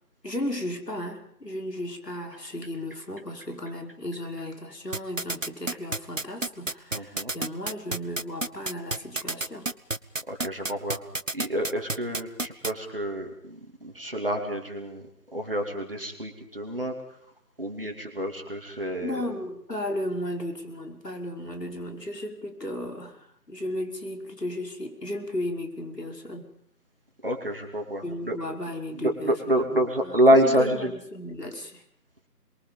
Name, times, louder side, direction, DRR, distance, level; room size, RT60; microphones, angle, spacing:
voice 1, 0.2-9.7 19.0-26.5 28.0-30.2 30.4-31.8, left 1 dB, 70° left, 2 dB, 5.6 m, -35 dB
sound 1, 4.9-12.7, right 2 dB, 50° right, 0.9 m, -29 dB
voice 2, 6.9-7.3 10.3-11.0 11.3-15.1 15.3-16.9 17.6-19.3 27.2-28.4 28.9-30.9, right 1 dB, 35° right, 3 dB, 2.9 m, -27 dB
30.0 x 23.0 x 5.4 m, 0.71 s
figure-of-eight pair, 170°, 49 cm